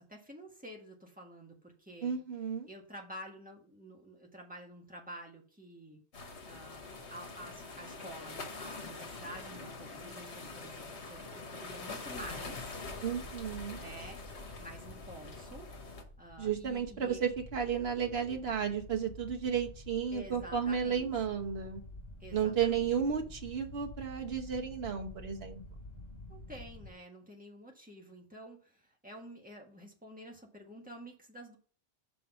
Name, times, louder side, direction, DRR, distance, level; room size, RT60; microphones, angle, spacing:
voice 1, 0.0-2.2 2.7-6.0 6.4-12.8 13.7-14.2 14.6-15.7 16.2-17.2 20.1-21.4 22.2-22.9 26.3-31.6, right 1 dB, 10° right, 0 dB, 1.5 m, -49 dB
voice 2, 2.0-2.7 13.0-13.8 16.4-21.8 22.3-25.6, right 7 dB, 65° right, 3 dB, 1.3 m, -33 dB
sound 1, 6.1-16.0, left 3 dB, 75° left, 1.5 m, -45 dB
sound 2, 12.1-26.9, left 2 dB, 40° left, 1.7 m, -50 dB
6.1 x 3.9 x 6.0 m, 0.40 s
omnidirectional pair, 1.2 m